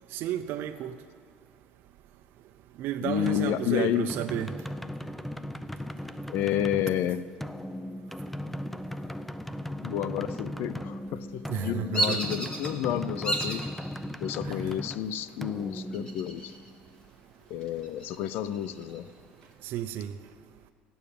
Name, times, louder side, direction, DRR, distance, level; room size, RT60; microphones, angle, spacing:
voice 1, 0.1-0.9 2.8-4.5 11.5-12.2 14.4-14.6 19.6-20.1, right 11 dB, 65° right, 0.5 m, -32 dB
voice 2, 3.0-4.1 6.3-7.2 9.8-13.7 14.2-16.5 17.5-19.1, left 11 dB, 65° left, 0.6 m, -30 dB
sound 1, 3.3-16.8, left 1 dB, 5° left, 0.4 m, -38 dB
Bird vocalization bird call bird song, 11.9-12.7 13.2-13.7 14.2-14.8 15.9-16.7 17.0-17.1 17.6-19.0, right 1 dB, 20° left, 2.0 m, -31 dB
16.0 x 7.1 x 8.6 m
cardioid pair, 130°, 4 cm